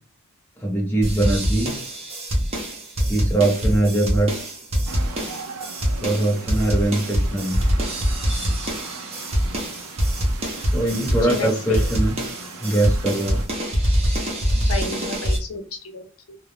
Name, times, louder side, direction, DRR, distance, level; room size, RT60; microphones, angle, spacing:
voice 1, 0.6-1.7 3.1-4.3 6.0-7.6 10.7-12.1 12.6-13.4, right 2 dB, 10° left, -2 dB, 0.8 m, -21 dB
sound 1, 1.0-15.4, equal, 30° right, 0.6 m, -24 dB
sound 2, 4.9-13.5, right 4 dB, 90° right, 0.5 m, -39 dB
voice 2, 11.2-11.8 14.7-16.4, left 3 dB, 85° left, 6 dB, 0.6 m, -31 dB
2.4 x 2.1 x 3.2 m, 0.39 s
head